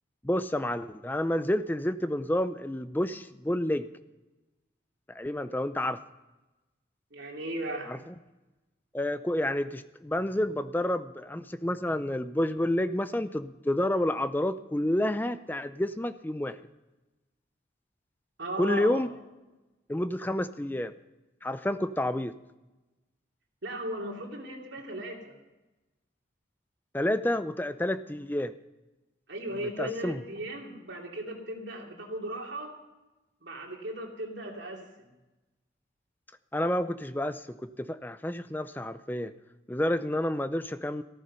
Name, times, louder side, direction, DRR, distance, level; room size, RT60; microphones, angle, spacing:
voice 1, 0.2-3.9 5.1-6.0 7.9-8.0 8.9-16.6 18.6-19.1 19.9-20.9 21.4-22.3 26.9-28.5 29.8-30.2 36.5-39.3 39.7-41.0, left 1 dB, 10° left, 12 dB, 0.5 m, -29 dB
voice 2, 7.1-7.9 18.4-19.0 23.6-25.4 29.3-32.8 33.4-35.1, right 1 dB, 75° right, 0 dB, 2.9 m, -37 dB
14.5 x 13.5 x 5.5 m, 1.1 s
head